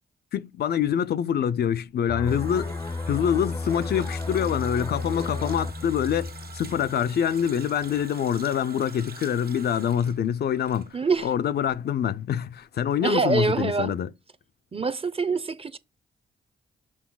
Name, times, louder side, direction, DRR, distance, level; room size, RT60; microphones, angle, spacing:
voice 1, 0.3-14.1, left 9 dB, 65° left, 0.5 m, -26 dB
Water tap faucet, 1.9-11.4 11.6-11.8, right 5 dB, 60° right, 1.6 m, -46 dB
sound 1, 2.1-7.5 7.8-8.0, left 3 dB, 20° left, 0.5 m, -33 dB
voice 2, 10.9-11.3 13.0-13.9 14.7-15.8, right 4 dB, 30° right, 0.8 m, -25 dB
6.3 x 4.1 x 3.9 m
supercardioid pair, 50°, 18 cm